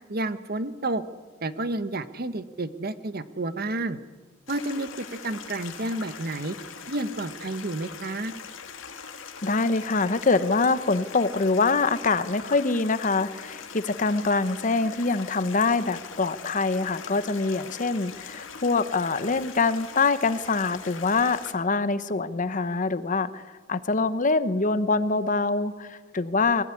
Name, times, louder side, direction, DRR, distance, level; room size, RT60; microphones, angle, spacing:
voice 1, 0.1-1.0 1.4-4.0 4.5-6.5 6.9-8.3, right 2 dB, 50° right, 12 dB, 1.1 m, -30 dB
Stream, 4.5-21.5, left 6 dB, 80° left, 2.1 m, -42 dB
voice 2, 9.4-23.4 23.7-26.6, left 3 dB, 40° left, 13 dB, 0.9 m, -24 dB
22.5 x 15.0 x 9.9 m, 1.4 s
head